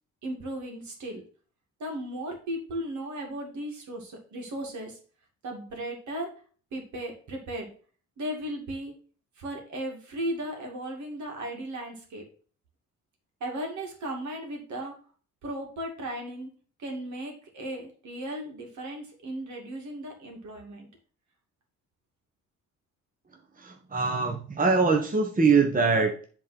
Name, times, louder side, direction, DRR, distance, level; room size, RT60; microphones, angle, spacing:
voice 1, 0.2-1.2 1.8-5.0 5.4-6.3 6.7-7.7 8.2-9.0 9.4-12.2 13.4-15.0 15.4-16.5 16.8-20.9, right 1 dB, 70° right, 1 dB, 2.6 m, -36 dB
voice 2, 23.6-26.3, right 4 dB, 30° right, 2 dB, 1.2 m, -23 dB
7.5 x 3.9 x 5.9 m, 0.42 s
cardioid pair, 90°, 30 cm